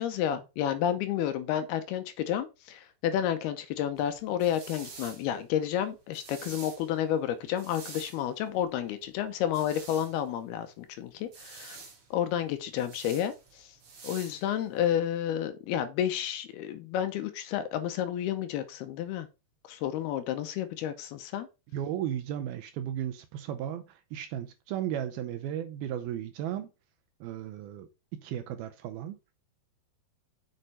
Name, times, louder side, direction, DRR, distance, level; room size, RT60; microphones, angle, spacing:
voice 1, 0.0-11.8 12.1-13.7 14.0-19.3 19.7-21.5, left 10 dB, 75° left, 2.6 m, -31 dB
sound 1, 4.0-14.9, right 5 dB, 45° right, 2.1 m, -49 dB
voice 2, 21.7-26.7 27.2-29.2, right 10 dB, 80° right, 2.3 m, -35 dB
6.6 x 6.5 x 4.2 m
omnidirectional pair, 4.9 m